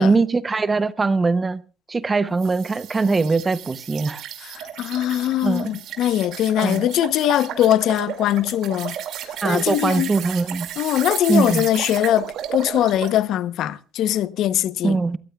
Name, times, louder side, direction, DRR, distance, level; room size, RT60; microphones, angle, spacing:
voice 1, 0.0-1.6 1.9-4.2 5.4-5.7 6.6-6.9 9.4-10.7 11.3-11.7 14.8-15.2, right 3 dB, 20° right, 0.7 m, -21 dB
sound 1, 2.4-13.2, right 10 dB, 60° right, 2.3 m, -33 dB
voice 2, 4.4-9.0 9.2-10.1 10.8-15.0, left 12 dB, 60° left, 0.8 m, -21 dB
28.5 x 14.5 x 2.3 m
cardioid pair, 130°, 0 cm